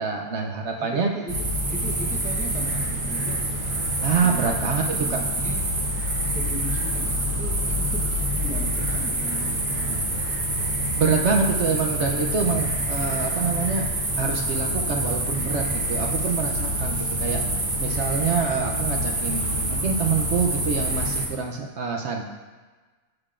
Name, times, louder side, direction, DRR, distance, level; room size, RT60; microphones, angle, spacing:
voice 1, 0.0-1.1 4.0-5.2 10.9-17.4 17.8-22.2, right 5 dB, 65° right, 1 dB, 0.9 m, -26 dB
voice 2, 0.8-3.7 4.2-5.7 6.3-10.3, right 1 dB, 5° right, -1 dB, 0.8 m, -38 dB
sound 1, 1.3-21.3, right 1 dB, 45° right, 1.4 m, -26 dB
11.0 x 6.6 x 2.5 m, 1.3 s
omnidirectional pair, 1.3 m